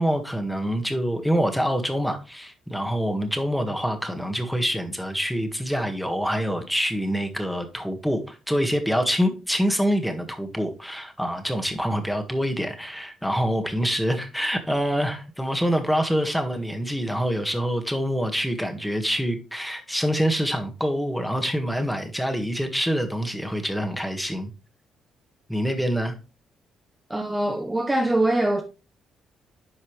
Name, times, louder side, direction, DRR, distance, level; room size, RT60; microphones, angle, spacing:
voice 1, 0.0-24.5 25.5-26.1, equal, ahead, 1.7 m, -26 dB
voice 2, 27.1-28.6, right 1 dB, 15° right, 1.1 m, -23 dB
10.5 x 5.4 x 3.2 m
cardioid pair, 90°, 0 cm